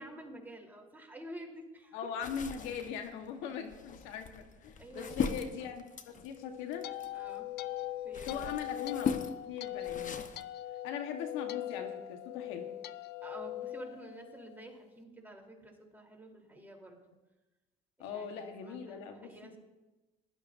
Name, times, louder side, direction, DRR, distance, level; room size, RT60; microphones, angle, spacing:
voice 1, 0.0-2.0 3.2-3.5 4.8-5.3 7.1-7.5 8.0-8.5 13.2-17.0 18.0-19.6, right 1 dB, 10° right, 0 dB, 3.4 m, -50 dB
voice 2, 1.9-6.9 8.3-10.2 10.8-12.7 18.0-19.6, left 7 dB, 85° left, 6 dB, 1.3 m, -41 dB
sound 1, 2.2-7.4 7.9-10.4, left 6 dB, 40° left, 1.0 m, -39 dB
sound 2, 6.3-14.7, left 13 dB, 60° left, 0.5 m, -41 dB
19.5 x 12.0 x 2.6 m, 1.1 s
supercardioid pair, 85°, 20 cm